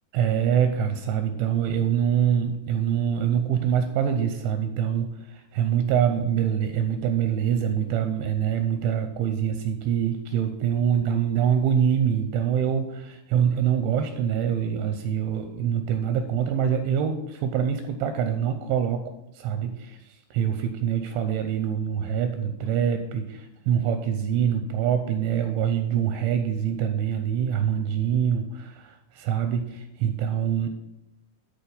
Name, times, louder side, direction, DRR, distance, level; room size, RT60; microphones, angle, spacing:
voice 1, 0.1-20.0 20.3-30.7, right 8 dB, 85° right, 7 dB, 2.8 m, -25 dB
11.0 x 4.4 x 6.9 m, 0.87 s
omnidirectional pair, 5.9 m